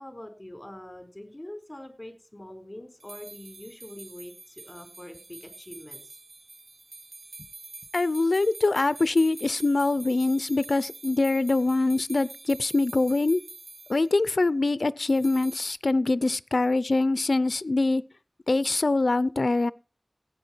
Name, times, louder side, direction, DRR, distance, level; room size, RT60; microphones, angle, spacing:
voice 1, 0.0-6.2, left 1 dB, 25° left, 4.4 m, -44 dB
sound 1, 3.0-14.1 15.1-15.8, right 3 dB, 85° right, 0.8 m, -46 dB
voice 2, 7.9-13.4 13.9-18.0 18.5-19.7, left 2 dB, 80° left, 0.5 m, -24 dB
16.5 x 8.9 x 4.5 m
wide cardioid pair, 50°, 0 cm